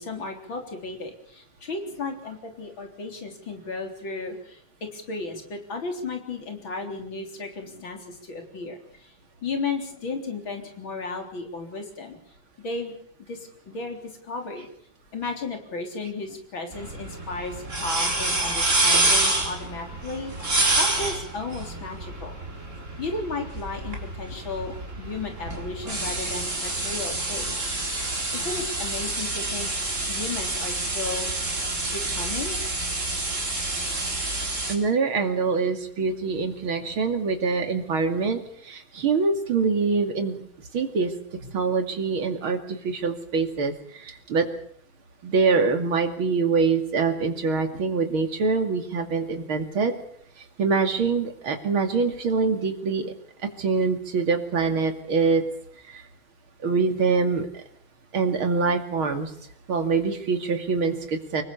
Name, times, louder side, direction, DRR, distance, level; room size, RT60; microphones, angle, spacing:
voice 1, 0.0-9.1 9.4-12.2 12.6-12.9 13.3-14.7 15.1-22.4 23.0-27.6 28.3-29.8 30.1-31.3 31.8-32.6, left 3 dB, 65° left, 4 dB, 4.5 m, -34 dB
sound 1, 16.7-34.7, right 2 dB, 35° right, 4.4 m, -28 dB
voice 2, 34.7-40.4 40.7-41.1 41.4-44.5 45.2-50.0 50.6-53.1 53.6-55.4 55.9-56.0 56.6-57.6 58.1-59.3 59.7-61.4, right 4 dB, 80° right, 6 dB, 3.3 m, -24 dB
25.0 x 20.5 x 7.1 m, 0.64 s
omnidirectional pair, 2.3 m